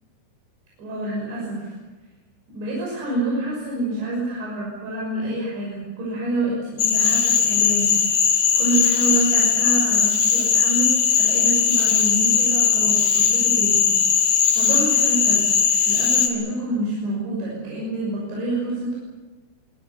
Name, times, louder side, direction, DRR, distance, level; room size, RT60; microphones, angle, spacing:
voice 1, 0.8-1.8 2.5-7.9 8.6-13.8 14.6-15.5 15.9-19.0, right 2 dB, 80° right, -4 dB, 8.6 m, -27 dB
Cricket / Frog, 6.8-16.3, left 7 dB, 55° left, 3.5 m, -19 dB
25.5 x 21.5 x 6.9 m, 1.2 s
omnidirectional pair, 5.1 m